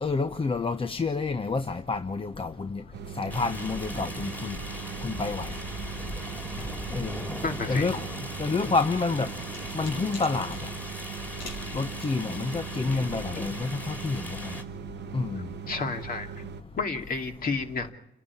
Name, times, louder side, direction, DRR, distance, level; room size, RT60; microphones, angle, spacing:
voice 1, 0.0-2.8 3.2-4.5 5.0-5.5 6.9-7.2 7.7-8.0 8.4-9.3 9.7-10.5 11.7-14.2 15.1-15.4, left 4 dB, 25° left, 9 dB, 0.8 m, -28 dB
sound 1, 2.9-16.6, right 7 dB, 60° right, 0.9 m, -40 dB
sound 2, 3.3-14.6, equal, 10° left, 2.9 m, -39 dB
voice 2, 7.4-7.9 12.9-13.0 13.4-13.5 15.3-16.4 16.8-17.9, left 4 dB, 45° left, 4 dB, 2.6 m, -32 dB
sound 3, 8.9-10.7 11.4-11.7, left 4 dB, 75° left, 3.9 m, -44 dB
29.0 x 11.0 x 9.7 m, 0.86 s
cardioid pair, 90°, 20 cm